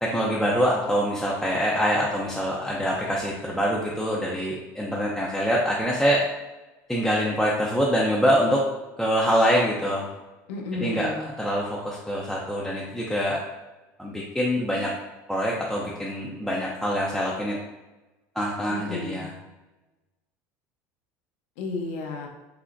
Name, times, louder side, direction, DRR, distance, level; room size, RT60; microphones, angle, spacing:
voice 1, 0.0-6.3 6.9-8.6 9.0-10.1 10.8-13.4 14.0-14.9 15.3-17.6 18.4-19.3, equal, ahead, -5 dB, 0.5 m, -25 dB
voice 2, 10.5-11.3 18.7-19.2 21.6-22.3, left 3 dB, 85° left, 1 dB, 0.8 m, -32 dB
5.8 x 2.1 x 2.5 m, 1.1 s
supercardioid pair, 125°, 7 cm